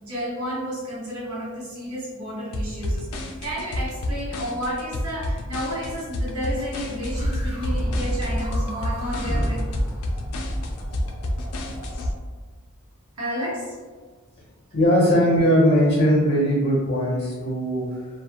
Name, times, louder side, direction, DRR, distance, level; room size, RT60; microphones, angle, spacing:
voice 1, 0.0-9.7 13.2-13.7, equal, 85° right, -7 dB, 1.0 m, -31 dB
sound 1, 2.5-12.1, left 1 dB, 85° left, 0.4 m, -30 dB
sound 2, 7.0-12.1, equal, 25° right, 0.5 m, -29 dB
voice 2, 14.7-18.1, equal, 45° left, -4 dB, 0.6 m, -19 dB
2.3 x 2.1 x 2.8 m, 1.4 s
head